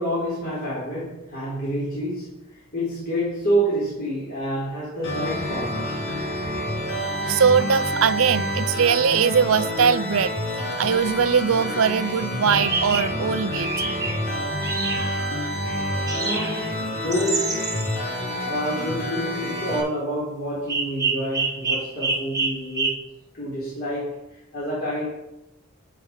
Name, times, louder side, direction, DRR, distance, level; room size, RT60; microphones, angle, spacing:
voice 1, 0.0-6.0 16.1-17.7 18.4-23.1 23.3-25.2, equal, 45° left, 3.9 m, -28 dB
sound 1, 5.0-19.8, left 1 dB, 60° left, 3.7 m, -28 dB
voice 2, 7.3-10.3 10.8-13.7, right 6 dB, 70° right, 0.5 m, -21 dB
sound 2, 12.0-12.1 12.5-13.1 13.5-14.2 14.6-15.2 16.1-16.7 17.1-18.0 20.7-23.0, right 4 dB, 15° right, 1.3 m, -27 dB
13.0 x 5.1 x 5.8 m
head